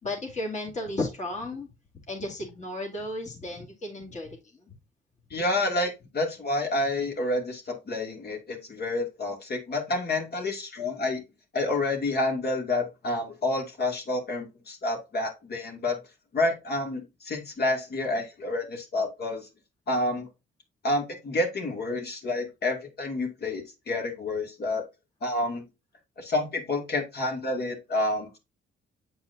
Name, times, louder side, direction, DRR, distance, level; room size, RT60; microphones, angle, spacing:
voice 1, 0.0-1.7 2.1-4.3, left 2 dB, 35° left, 2.3 m, -33 dB
voice 2, 5.3-11.2 11.5-16.0 16.3-19.5 19.9-20.3 20.8-24.8 25.2-25.7 26.2-28.4, left 2 dB, 55° left, 2.5 m, -29 dB
8.0 x 4.7 x 2.7 m
cardioid pair, 90°, 20 cm